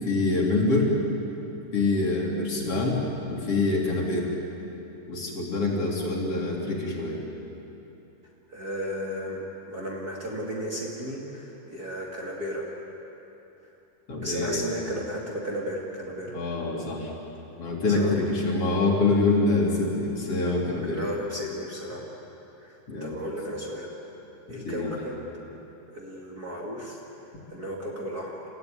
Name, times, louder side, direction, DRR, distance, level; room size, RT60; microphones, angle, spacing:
voice 1, 0.0-0.9 1.7-3.0 3.3-4.3 5.1-7.2 14.1-14.6 16.3-17.1 17.6-21.0 22.9-23.2 24.6-24.9, left 3 dB, 45° left, -2 dB, 4.1 m, -25 dB
voice 2, 8.5-9.4 9.7-12.7 14.2-16.4 17.9-18.1 20.8-22.0 22.6-23.9 24.5-25.2 25.9-28.5, equal, 30° right, -3 dB, 2.6 m, -34 dB
29.0 x 15.0 x 9.6 m, 3.0 s
omnidirectional pair, 3.7 m